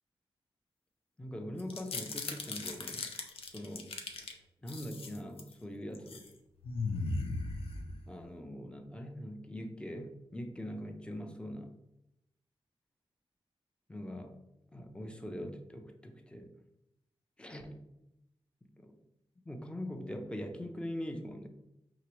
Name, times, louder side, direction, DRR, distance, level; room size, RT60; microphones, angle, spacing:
voice 1, 1.2-3.1 3.5-3.9 4.6-6.3 8.1-11.7 13.9-14.3 14.7-16.5 17.4-17.9 18.6-18.9 19.5-21.5, equal, 10° left, 5 dB, 0.6 m, -42 dB
sound 1, 1.6-4.3 4.7-5.5 5.9-6.3 6.6-8.2, left 3 dB, 75° left, 0.6 m, -38 dB
4.7 x 3.0 x 3.1 m, 0.87 s
cardioid pair, 80°, 10 cm